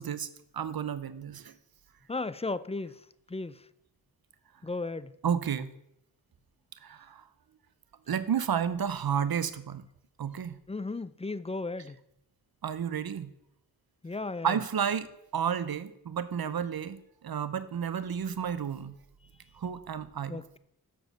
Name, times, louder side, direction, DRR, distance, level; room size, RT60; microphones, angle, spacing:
voice 1, 0.0-1.5 5.2-5.7 6.8-7.3 8.1-9.9 10.2-10.6 12.6-13.3 14.4-18.9 19.5-20.4, right 8 dB, 70° right, 14 dB, 0.7 m, -32 dB
voice 2, 2.1-2.9 3.3-3.5 4.6-5.1 10.7-11.9 14.0-14.6 20.3-20.6, left 3 dB, 15° left, 16 dB, 0.4 m, -35 dB
7.1 x 6.2 x 6.1 m, 0.78 s
cardioid pair, 40°, 38 cm